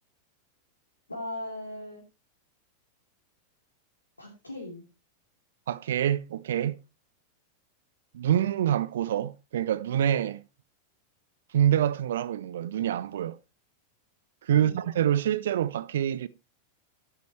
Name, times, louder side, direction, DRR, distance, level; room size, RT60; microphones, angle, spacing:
voice 1, 1.1-2.0 4.2-4.9 14.5-14.9, left 1 dB, 80° left, 2.8 m, -38 dB
voice 2, 5.7-6.8 8.1-10.4 11.5-13.4 14.5-16.3, right 10 dB, 60° right, 0.6 m, -26 dB
12.0 x 9.3 x 3.2 m
figure-of-eight pair, 90°, 0 cm